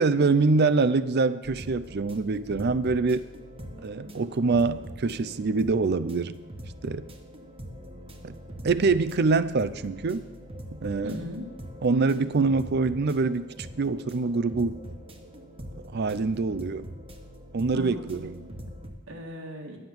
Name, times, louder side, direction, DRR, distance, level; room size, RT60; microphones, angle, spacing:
voice 1, 0.0-3.3 3.8-6.4 6.8-7.0 8.2-8.4 8.6-10.2 10.8-11.2 11.8-13.5 13.8-14.8 15.9-16.9 17.5-18.4, right 4 dB, 50° right, 15 dB, 0.5 m, -25 dB
sound 1, 1.4-18.9, equal, 25° right, 1.1 m, -43 dB
voice 2, 11.0-11.5 17.7-19.8, equal, 80° right, -1 dB, 1.7 m, -39 dB
10.5 x 7.8 x 7.0 m, 1.2 s
head